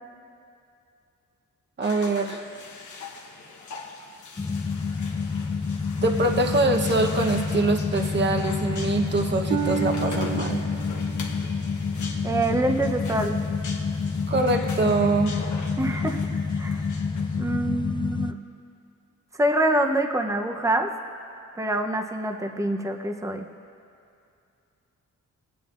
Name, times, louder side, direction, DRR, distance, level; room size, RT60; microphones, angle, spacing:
sound 1, 1.8-17.4, left 4 dB, 70° left, 1.1 m, -42 dB
voice 1, 1.8-2.4 6.0-10.6 14.3-15.3, right 2 dB, 35° right, 4 dB, 1.0 m, -24 dB
sound 2, 4.4-18.3, left 5 dB, 15° left, 0.3 m, -28 dB
Harp, 9.5-13.2 13.8-14.2 14.8-14.9, right 12 dB, 75° right, 0.6 m, -34 dB
voice 2, 12.2-13.4 15.8-16.9 17.4-18.3 19.4-20.9 21.6-23.5, right 1 dB, 10° right, 4 dB, 0.7 m, -25 dB
20.5 x 9.4 x 2.5 m, 2.5 s
cardioid pair, 80°, 30 cm